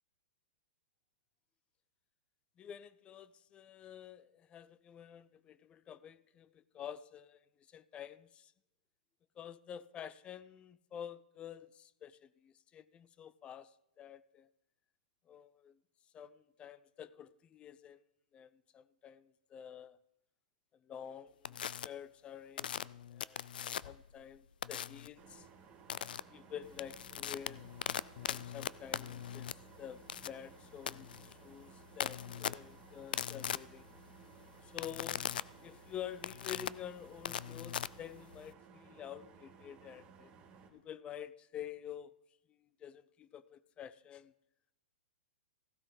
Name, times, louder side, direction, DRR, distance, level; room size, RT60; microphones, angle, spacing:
voice 1, 2.6-8.5 9.4-14.5 15.3-15.8 16.1-18.0 18.3-20.0 20.8-25.5 26.3-27.7 28.2-33.9 34.6-35.3 35.6-40.3 40.7-42.1 42.5-44.3, left 9 dB, 20° left, 18 dB, 0.5 m, -49 dB
sound 1, 21.4-21.9 22.6-24.1 24.6-25.1 25.9-26.2 26.6-38.5, left 9 dB, 75° left, 0.4 m, -40 dB
sound 2, 25.1-40.7, right 6 dB, 35° right, 2.7 m, -59 dB
15.5 x 12.0 x 3.9 m, 0.84 s
hypercardioid pair, 130°, 5 cm